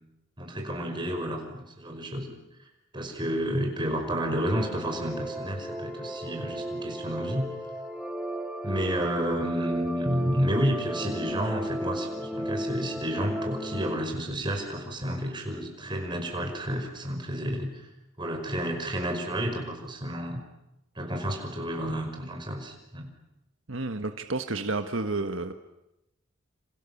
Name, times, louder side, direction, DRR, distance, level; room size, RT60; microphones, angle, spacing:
voice 1, 0.4-2.4 2.9-7.5 8.6-17.9 18.2-20.4 21.0-23.1, equal, 25° right, 3 dB, 5.5 m, -30 dB
sound 1, 4.5-14.0, right 1 dB, 5° right, 2.6 m, -35 dB
voice 2, 23.7-25.5, right 3 dB, 75° right, 7 dB, 1.4 m, -30 dB
28.5 x 28.0 x 7.2 m, 0.91 s
head